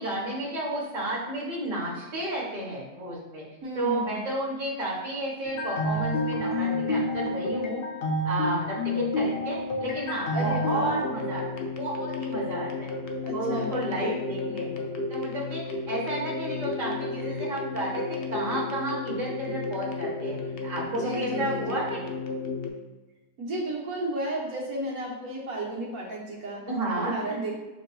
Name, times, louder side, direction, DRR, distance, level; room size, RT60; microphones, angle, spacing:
voice 1, 0.0-3.4 3.7-7.8 8.2-12.9 13.3-20.4 20.6-22.1 26.7-27.4, right 1 dB, 35° right, -6 dB, 1.4 m, -32 dB
voice 2, 3.6-4.2 10.3-11.0 13.2-13.7 20.8-21.9 23.4-26.6 26.9-27.5, right 1 dB, 70° right, -4 dB, 1.6 m, -33 dB
sound 1, 5.4-22.7, left 2 dB, 70° left, 0.5 m, -31 dB
7.3 x 2.6 x 2.3 m, 1.1 s
omnidirectional pair, 1.6 m